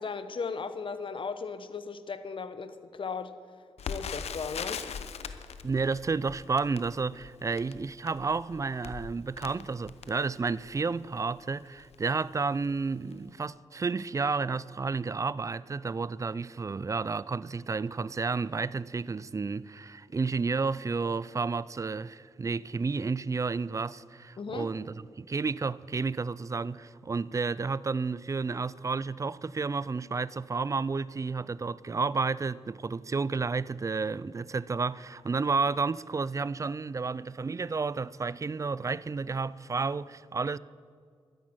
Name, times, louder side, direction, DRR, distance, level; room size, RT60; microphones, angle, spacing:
voice 1, 0.0-3.3 3.9-4.8 24.4-24.7, left 5 dB, 55° left, 1.0 m, -36 dB
Crackle, 3.8-10.8 11.4-11.5 11.8-12.0 12.6-12.8 13.1-13.2, left 6 dB, 90° left, 0.7 m, -41 dB
voice 2, 5.6-40.6, right 4 dB, 30° right, 0.4 m, -31 dB
12.5 x 10.5 x 7.8 m
cardioid pair, 80°, 11 cm